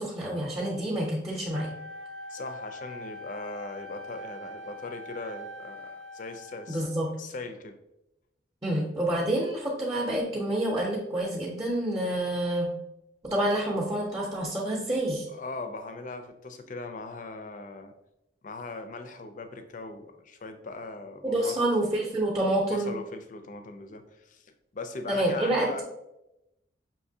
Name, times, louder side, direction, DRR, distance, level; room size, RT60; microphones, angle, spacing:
voice 1, 0.0-1.7 6.7-7.1 8.6-12.7 13.2-15.3 21.2-22.9 25.1-25.8, right 1 dB, 20° right, -4 dB, 0.7 m, -28 dB
Wind instrument woodwind instrument, 1.5-7.0, left 1 dB, 80° right, 0.6 m, -43 dB
voice 2, 2.3-6.8 7.2-7.8 15.3-17.9 18.4-21.6 22.7-25.8, left 3 dB, 45° left, 7 dB, 0.5 m, -39 dB
5.8 x 2.9 x 2.7 m, 0.89 s
head